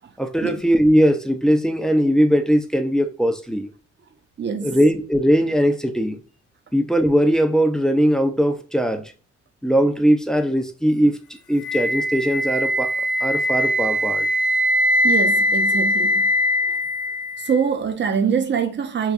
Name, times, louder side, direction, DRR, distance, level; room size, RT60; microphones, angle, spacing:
voice 1, 0.2-3.7 4.6-6.2 6.7-9.1 9.6-11.2 11.5-12.9 13.2-14.3, equal, ahead, 0.5 m, -19 dB
voice 2, 4.4-4.8 15.0-16.3 16.7-16.8 17.4-19.1, right 6 dB, 40° right, 0.7 m, -24 dB
Wind instrument woodwind instrument, 11.6-17.6, left 1 dB, 85° left, 0.6 m, -21 dB
4.7 x 2.2 x 2.5 m
cardioid pair, 90°, 30 cm